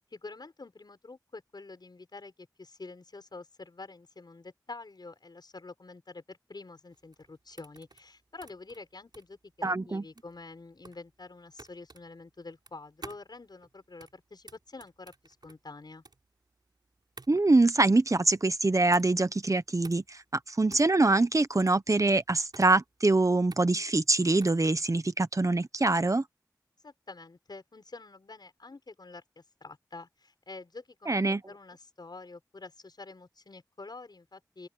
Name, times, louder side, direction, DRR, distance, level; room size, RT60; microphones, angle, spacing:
voice 1, 0.1-16.0 26.8-34.7, left 3 dB, 85° left, 6.5 m, -47 dB
sound 1, 6.9-24.7, right 3 dB, 85° right, 4.6 m, -53 dB
voice 2, 9.6-10.0 17.3-20.2 20.5-26.2 31.1-31.4, right 2 dB, 50° right, 1.1 m, -24 dB
open air
wide cardioid pair, 55°, 7 cm